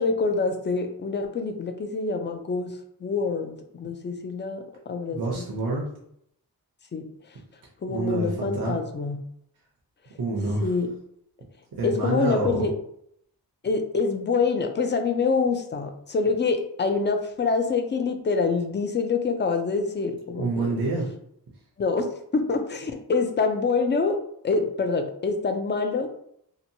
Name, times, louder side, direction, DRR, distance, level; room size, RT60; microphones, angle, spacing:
voice 1, 0.0-2.7 3.0-5.4 6.9-7.0 7.8-9.2 10.6-10.9 11.8-12.7 13.6-20.7 21.8-22.1 22.3-24.2 24.4-26.1, left 4 dB, 30° left, 5 dB, 0.3 m, -26 dB
voice 2, 5.1-5.9 7.9-8.8 10.2-10.7 11.7-12.7 20.4-21.1, right 2 dB, 65° right, -3 dB, 0.7 m, -27 dB
2.8 x 2.1 x 2.7 m, 0.72 s
wide cardioid pair, 105°, 39 cm